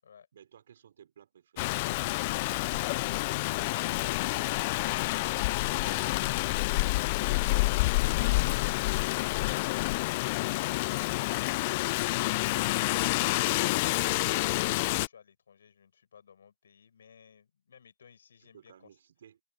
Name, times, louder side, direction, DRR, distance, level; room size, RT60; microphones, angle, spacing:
voice 1, 0.3-4.3 5.4-6.8 7.2-9.0 10.2-10.9 18.4-19.4, right 9 dB, 80° right, 5.8 m, -58 dB
Rain, 1.6-15.1, left 22 dB, 60° left, 0.5 m, -28 dB
voice 2, 14.4-18.9, left 7 dB, 85° left, 7.1 m, -57 dB
hypercardioid pair, 90°, 0 cm